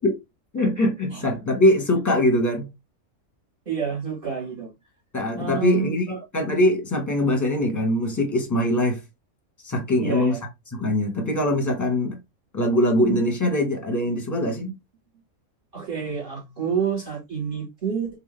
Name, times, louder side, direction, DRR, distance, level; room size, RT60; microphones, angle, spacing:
voice 1, 0.5-2.7 5.1-9.0 9.6-10.4 10.7-12.2 12.5-14.7, left 1 dB, 15° left, 1.0 m, -22 dB
voice 2, 3.7-4.7 5.4-6.2 10.0-10.4 13.0-13.2 14.6-14.7 15.7-18.1, right 6 dB, 40° right, 2.0 m, -28 dB
3.7 x 2.8 x 3.2 m
omnidirectional pair, 1.5 m